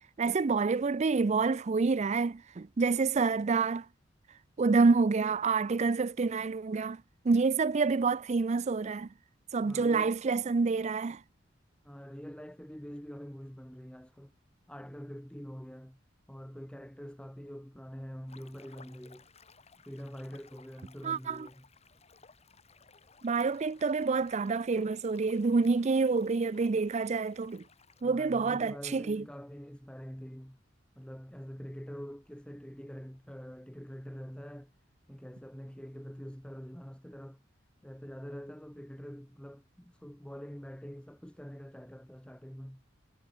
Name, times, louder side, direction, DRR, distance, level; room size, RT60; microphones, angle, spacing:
voice 1, 0.2-3.9 4.6-9.1 9.5-11.2 21.0-21.5 23.2-27.6 28.0-29.2, right 4 dB, 35° right, 0.4 m, -28 dB
voice 2, 9.6-10.1 11.8-14.3 14.7-16.0 16.3-19.3 19.8-21.7 28.0-30.6 30.9-34.7 35.1-37.4 37.8-42.8, equal, 5° left, 1.7 m, -45 dB
sound 1, 18.3-28.0, left 5 dB, 35° left, 2.4 m, -59 dB
head